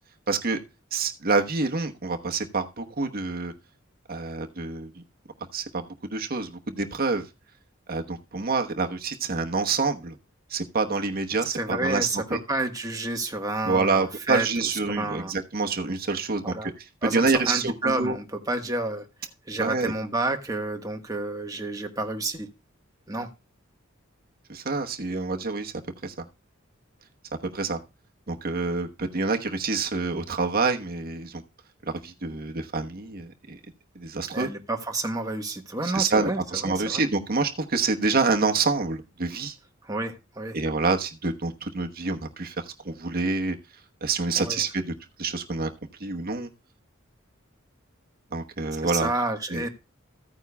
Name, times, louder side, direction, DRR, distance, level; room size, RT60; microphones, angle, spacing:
voice 1, 0.3-0.6 0.9-3.5 4.1-5.0 5.5-7.2 7.9-10.2 10.5-12.4 13.6-16.5 17.0-18.1 19.6-19.9 24.5-25.7 26.0-26.3 27.5-27.8 28.3-31.4 31.9-33.6 33.9-34.5 35.8-39.5 40.5-43.6 44.0-44.9 45.2-45.7 46.0-46.5 48.3-49.1 49.5-49.6, right 4 dB, 45° right, 4 dB, 1.1 m, -27 dB
voice 2, 11.5-15.3 16.4-16.7 17.0-19.1 19.4-22.5 23.1-23.3 34.3-37.0 39.8-40.6 44.3-44.6 48.8-49.7, right 2 dB, 20° right, 3 dB, 1.4 m, -30 dB
15.0 x 9.1 x 2.3 m, 0.26 s
head